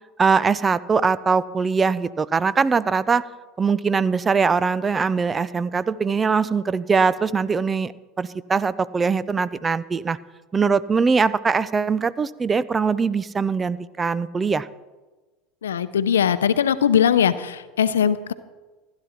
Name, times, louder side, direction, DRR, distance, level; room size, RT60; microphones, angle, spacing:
voice 1, 0.2-3.3 3.6-7.9 8.2-10.2 10.5-14.7, right 5 dB, 25° right, 18 dB, 0.5 m, -21 dB
voice 2, 15.6-18.3, left 8 dB, 85° left, 14 dB, 0.6 m, -20 dB
15.5 x 11.5 x 4.4 m, 1.2 s
hypercardioid pair, 85°, 0 cm